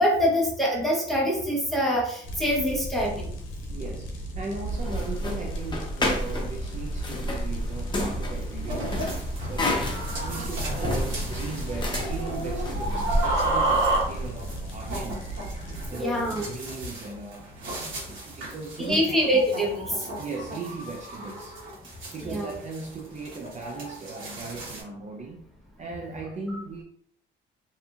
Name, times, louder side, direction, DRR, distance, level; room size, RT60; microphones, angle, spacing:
voice 1, 0.0-3.3 15.9-16.4 18.8-19.9 22.2-22.5, equal, ahead, 1.0 m, -24 dB
sound 1, 2.2-15.9, right 1 dB, 85° left, 0.7 m, -37 dB
voice 2, 3.7-9.9 10.2-15.3 15.9-19.3 20.2-21.6 22.1-25.4 25.8-26.8, right 3 dB, 35° right, 0.5 m, -38 dB
sound 2, 4.6-14.3, equal, 25° left, 0.7 m, -30 dB
sound 3, 8.7-24.8, right 2 dB, 75° right, 1.3 m, -33 dB
2.7 x 2.5 x 2.4 m
cardioid pair, 90°, 20 cm